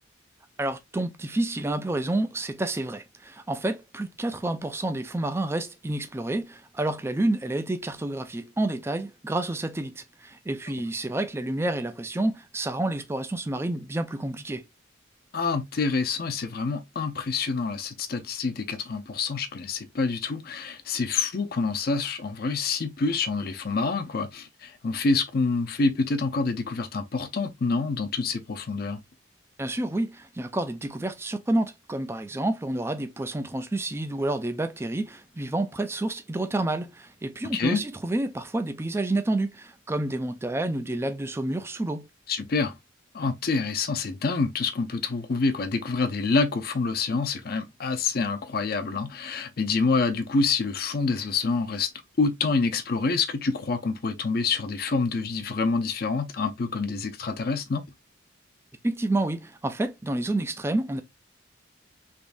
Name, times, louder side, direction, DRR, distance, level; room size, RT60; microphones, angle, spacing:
voice 1, 0.6-14.7 29.6-42.1 58.8-61.0, right 2 dB, 10° right, 0.3 m, -29 dB
voice 2, 15.3-29.0 37.5-37.8 42.3-42.7 43.1-51.9 52.2-57.8, left 4 dB, 50° left, 0.5 m, -27 dB
3.5 x 3.1 x 2.4 m
head